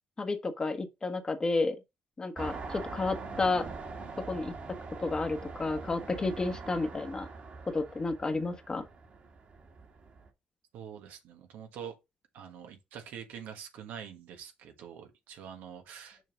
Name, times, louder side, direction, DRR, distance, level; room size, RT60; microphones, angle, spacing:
voice 1, 0.2-1.8 2.2-3.7 4.3-4.5 5.0-7.3 7.7-8.8, left 3 dB, 25° left, 1.3 m, -31 dB
sound 1, 2.3-10.3, right 4 dB, 45° right, 1.9 m, -43 dB
voice 2, 10.7-12.0 12.3-16.2, right 8 dB, 85° right, 1.4 m, -45 dB
6.4 x 5.3 x 3.9 m
cardioid pair, 100°, 3 cm